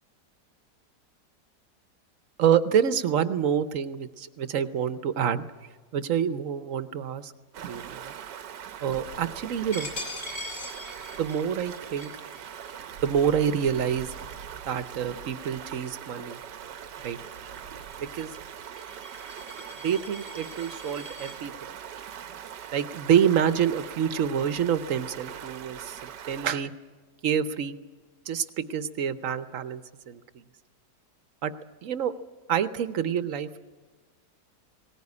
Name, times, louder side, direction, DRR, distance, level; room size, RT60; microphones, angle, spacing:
voice 1, 2.4-5.5 5.9-7.3 7.6-8.1 8.8-9.9 11.2-12.1 13.0-14.1 14.6-16.4 17.0-17.2 18.0-18.3 19.8-21.5 22.7-26.7 27.2-27.8 28.3-30.4 31.4-31.5 31.8-32.1 32.5-33.6, right 8 dB, 55° right, 12 dB, 1.1 m, -27 dB
Stream, 7.5-26.5, right 9 dB, 85° right, 1.6 m, -41 dB
Coin (dropping), 9.7-15.1 15.6-15.9 16.2-21.4, left 2 dB, 50° left, 5.1 m, -43 dB
19.0 x 18.5 x 9.6 m, 1.4 s
omnidirectional pair, 1.8 m